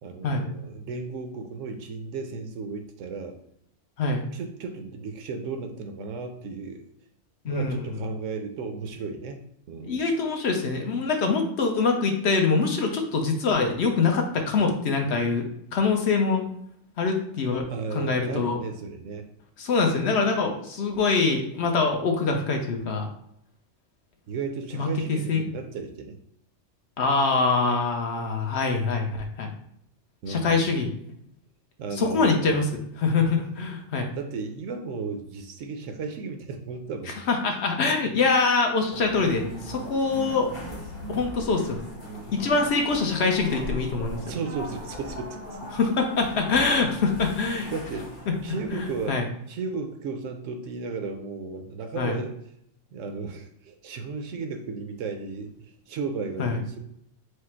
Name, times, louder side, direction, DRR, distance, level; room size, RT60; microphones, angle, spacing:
voice 1, 0.0-3.4 4.3-6.9 7.5-9.4 9.7-10.0 17.7-19.3 24.3-26.2 30.2-30.6 31.8-32.7 34.2-37.1 44.2-45.7 47.7-49.2 49.5-52.3 52.9-55.5 55.9-56.8, right 4 dB, 75° right, 6 dB, 1.0 m, -34 dB
voice 2, 7.4-7.8 9.8-16.4 17.0-17.7 17.9-18.6 19.6-23.1 24.7-25.4 27.0-29.5 30.3-30.9 32.0-34.1 37.1-40.5 41.1-41.8 42.3-44.3 45.7-47.7 48.7-49.3 52.0-52.2 56.4-56.6, left 4 dB, 60° left, 3 dB, 0.9 m, -24 dB
sound 1, 38.9-49.1, equal, 80° left, 1.9 m, -39 dB
4.8 x 2.0 x 4.3 m, 0.72 s
omnidirectional pair, 1.3 m